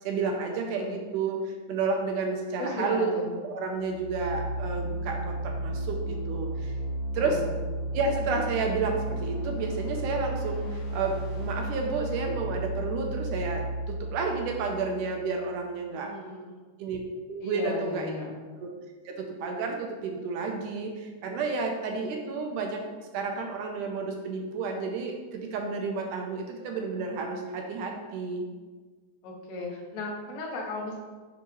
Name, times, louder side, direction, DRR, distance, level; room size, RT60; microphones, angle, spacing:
voice 1, 0.0-3.1 3.4-6.7 7.1-7.4 7.9-16.1 16.8-17.0 17.3-18.1 18.6-18.7 19.1-22.8 23.1-28.5, right 4 dB, 80° right, 2 dB, 2.0 m, -31 dB
voice 2, 2.6-3.3 7.1-7.5 15.9-16.4 17.4-18.3 29.2-31.0, left 2 dB, 80° left, -1 dB, 2.6 m, -35 dB
sound 1, 3.7-15.5, right 1 dB, 50° left, 2.5 m, -33 dB
8.7 x 3.6 x 3.0 m, 1.4 s
omnidirectional pair, 3.8 m